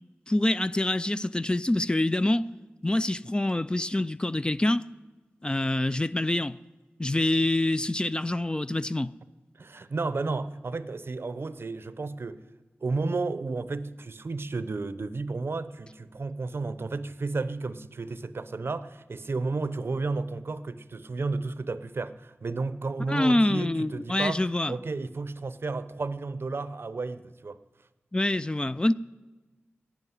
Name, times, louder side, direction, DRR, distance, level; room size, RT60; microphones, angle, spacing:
voice 1, 0.3-2.5 2.8-4.9 5.4-6.6 7.0-9.1 23.1-24.7 28.1-28.9, left 1 dB, 20° left, 0.3 m, -26 dB
voice 2, 9.6-12.4 12.8-24.4 24.7-27.6, right 3 dB, 60° right, 0.6 m, -32 dB
11.5 x 9.0 x 9.3 m
wide cardioid pair, 65°, 5 cm